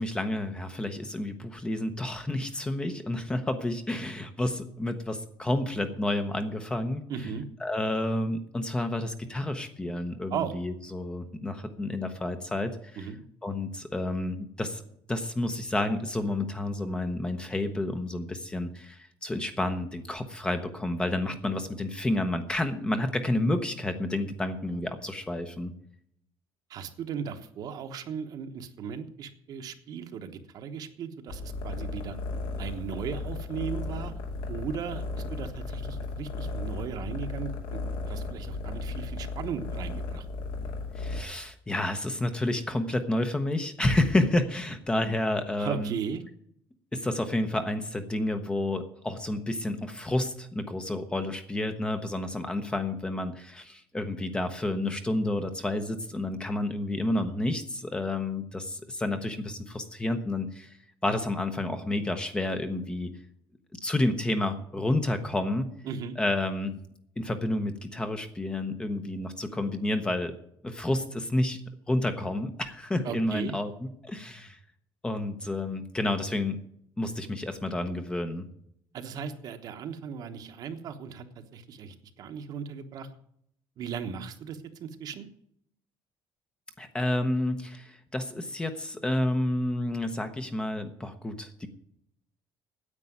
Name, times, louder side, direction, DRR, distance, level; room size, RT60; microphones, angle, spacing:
voice 1, 0.0-7.1 7.6-13.1 13.4-14.8 15.1-25.7 41.0-46.0 46.9-60.8 61.0-63.1 63.7-65.7 66.2-66.8 67.2-70.4 70.6-71.6 71.9-74.6 75.0-76.6 77.0-78.5 86.8-91.7, left 1 dB, 10° left, 8 dB, 0.8 m, -30 dB
voice 2, 7.1-7.5 10.3-10.5 12.9-13.2 26.7-32.2 32.6-34.1 34.5-37.8 38.1-40.3 45.6-46.2 65.8-66.2 73.0-73.6 78.9-81.2 81.5-83.1 83.8-85.3, right 7 dB, 50° right, 7 dB, 1.1 m, -37 dB
sound 1, 31.3-41.2, left 3 dB, 75° left, 2.7 m, -35 dB
9.8 x 8.3 x 9.2 m, 0.71 s
cardioid pair, 180°, 9 cm